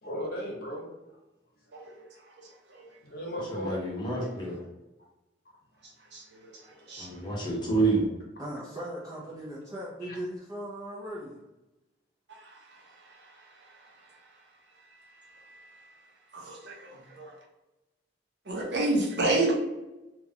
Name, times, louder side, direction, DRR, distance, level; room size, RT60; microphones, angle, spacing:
voice 1, 0.0-0.9 3.0-3.8 6.7-7.1 10.0-10.2, equal, 55° left, -1 dB, 0.9 m, -37 dB
voice 2, 3.5-4.6 7.0-8.1, right 3 dB, 25° left, -4 dB, 0.9 m, -28 dB
voice 3, 8.4-11.4, equal, 20° right, -6 dB, 0.5 m, -38 dB
voice 4, 16.3-16.8 17.2-17.3 18.5-19.5, right 2 dB, 65° right, -1 dB, 0.8 m, -28 dB
3.0 x 2.3 x 2.7 m, 1.0 s
head